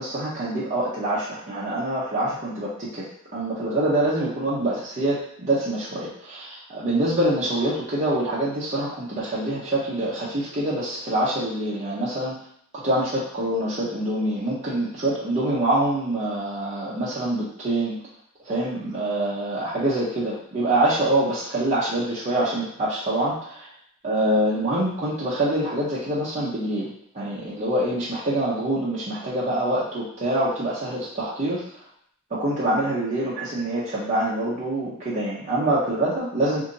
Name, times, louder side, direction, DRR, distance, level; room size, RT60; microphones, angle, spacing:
voice 1, 0.0-3.1 3.3-12.4 12.8-18.0 18.5-23.7 24.0-31.6 32.3-36.6, right 1 dB, 35° right, -9 dB, 0.8 m, -25 dB
4.1 x 2.7 x 2.7 m, 0.68 s
head